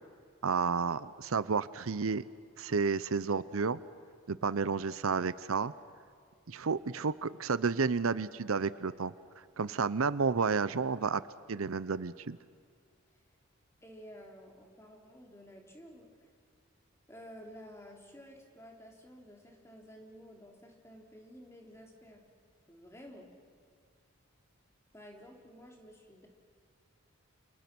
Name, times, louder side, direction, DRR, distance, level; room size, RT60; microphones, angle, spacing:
voice 1, 0.4-2.2 2.6-3.8 4.3-5.7 6.5-9.1 9.6-11.2 11.5-12.4, right 5 dB, 75° right, 16 dB, 0.7 m, -31 dB
voice 2, 13.8-16.3 17.1-22.2 22.7-23.3 24.9-26.3, equal, 10° left, 1 dB, 3.3 m, -52 dB
29.5 x 29.0 x 6.1 m, 2.3 s
head